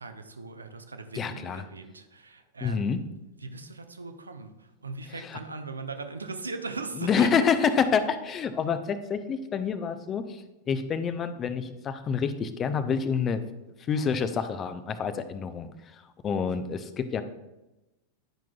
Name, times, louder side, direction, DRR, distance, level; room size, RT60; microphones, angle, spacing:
voice 1, 0.0-2.9 3.4-7.5, right 3 dB, 75° right, 8 dB, 0.6 m, -39 dB
voice 2, 1.2-1.6 2.6-3.0 5.2-5.4 7.0-13.4 13.9-15.7 16.2-17.2, left 6 dB, 25° left, 11 dB, 0.6 m, -27 dB
10.5 x 5.9 x 2.3 m, 0.99 s
figure-of-eight pair, 90°, 0 cm